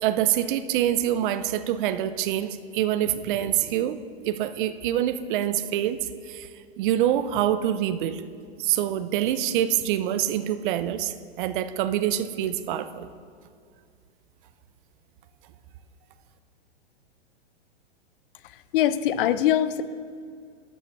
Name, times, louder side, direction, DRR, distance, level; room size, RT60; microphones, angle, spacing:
voice 1, 0.0-6.5 6.8-8.2 8.6-13.1, right 11 dB, 50° right, 13 dB, 0.6 m, -26 dB
voice 2, 18.7-19.8, left 11 dB, 55° left, 15 dB, 0.6 m, -22 dB
12.5 x 5.7 x 6.1 m, 2.2 s
hypercardioid pair, 125°, 32 cm